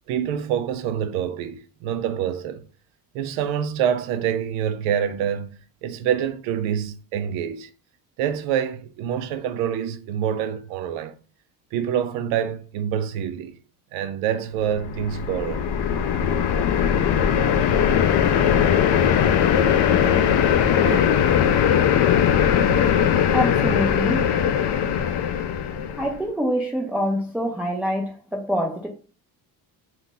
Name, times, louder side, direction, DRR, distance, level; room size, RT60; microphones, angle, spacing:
voice 1, 0.1-2.6 3.1-7.7 8.2-11.1 11.7-13.5 13.9-15.7 18.0-18.5 19.1-19.3 19.8-20.5 20.8-21.3, right 9 dB, 85° right, 0.6 m, -27 dB
sound 1, 14.7-26.1, left 8 dB, 60° left, 0.6 m, -20 dB
voice 2, 23.3-24.3 26.0-28.9, equal, 5° right, 0.4 m, -25 dB
2.7 x 2.4 x 3.8 m
supercardioid pair, 80°, 48 cm